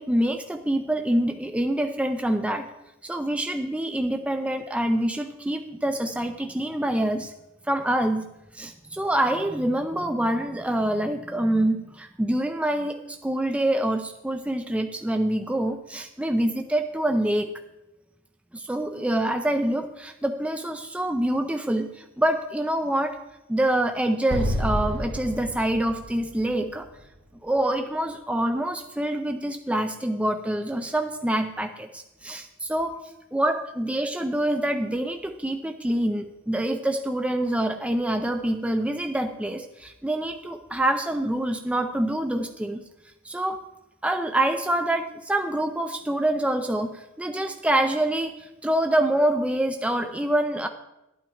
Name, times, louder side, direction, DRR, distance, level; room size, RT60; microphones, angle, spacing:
voice 1, 0.0-2.7 3.0-7.3 7.7-8.3 8.5-17.5 18.5-23.2 23.5-26.9 27.4-33.0 33.3-42.8 43.2-43.6 44.0-50.7, right 1 dB, 5° right, 6 dB, 0.4 m, -26 dB
Explosion, 24.3-27.6, equal, 55° right, 1.4 m, -30 dB
11.5 x 9.1 x 4.6 m, 0.94 s
head